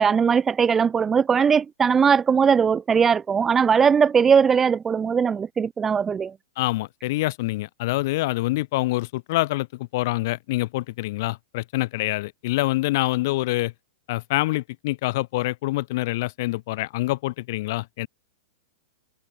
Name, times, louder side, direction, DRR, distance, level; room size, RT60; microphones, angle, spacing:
voice 1, 0.0-6.3, right 6 dB, 10° right, 1.4 m, -19 dB
voice 2, 6.6-13.7 14.1-18.1, left 19 dB, 45° left, 3.7 m, -26 dB
supercardioid pair, 170°, 2 cm